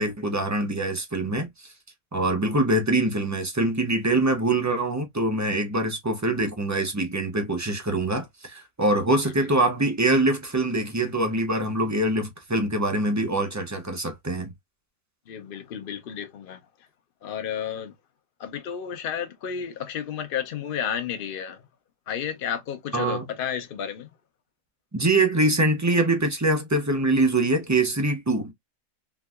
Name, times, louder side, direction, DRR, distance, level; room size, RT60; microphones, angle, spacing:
voice 1, 0.0-1.5 2.1-14.5 22.9-23.3 24.9-28.5, right 2 dB, 25° right, 0.3 m, -24 dB
voice 2, 15.3-16.6 17.2-17.9 18.4-21.6 22.1-24.1, left 8 dB, 50° left, 0.8 m, -32 dB
3.7 x 2.6 x 2.3 m
omnidirectional pair, 1.4 m